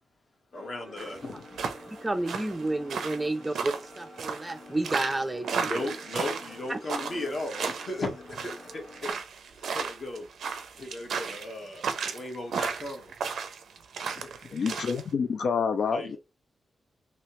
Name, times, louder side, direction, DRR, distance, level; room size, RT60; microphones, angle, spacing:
sound 1, 0.5-9.1, left 2 dB, 85° left, 1.8 m, -48 dB
voice 1, 0.5-1.4 5.5-8.5 9.0-9.1 9.6-10.3 10.8-13.1 14.0-14.6 15.9-16.2, left 2 dB, 45° left, 1.2 m, -36 dB
sound 2, 1.0-15.0, right 6 dB, 90° right, 0.5 m, -34 dB
voice 2, 1.9-5.9 6.7-6.8, right 2 dB, 15° right, 0.4 m, -31 dB
voice 3, 14.5-16.2, left 6 dB, 70° left, 0.3 m, -28 dB
3.1 x 2.8 x 3.0 m
wide cardioid pair, 125°, 0 cm